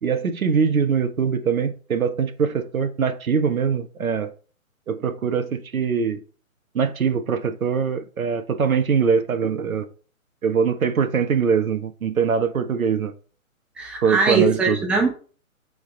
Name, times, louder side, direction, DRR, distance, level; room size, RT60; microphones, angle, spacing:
voice 1, 0.0-4.3 4.9-6.2 6.7-9.8 10.4-13.1 14.0-14.8, right 6 dB, 75° right, 1.3 m, -22 dB
voice 2, 13.8-15.1, right 3 dB, 5° right, 0.7 m, -21 dB
8.2 x 4.0 x 3.9 m
hypercardioid pair, 140°, 42 cm